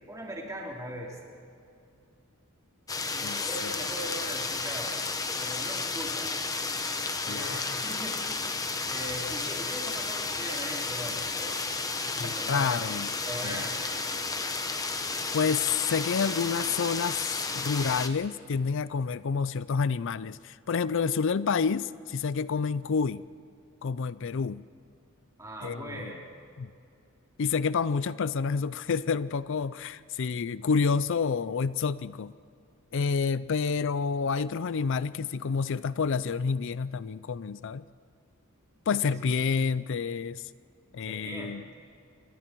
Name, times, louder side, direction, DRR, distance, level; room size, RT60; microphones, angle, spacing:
voice 1, 0.1-1.2 3.1-5.0 5.4-6.3 7.2-8.1 8.9-11.6 12.0-12.9 13.2-13.9 25.4-26.2 39.0-39.2 41.1-41.7, right 1 dB, 15° right, -2 dB, 3.8 m, -40 dB
sound 1, 2.9-18.1, left 3 dB, 15° left, 1.1 m, -32 dB
voice 2, 7.3-7.7 12.2-13.1 13.4-13.6 15.3-23.2 23.8-24.6 25.6-26.1 26.6-26.7 27.4-32.3 32.9-37.8 38.9-40.4 40.9-41.6, left 5 dB, 60° left, 17 dB, 0.5 m, -29 dB
28.5 x 24.0 x 4.6 m, 2.5 s
head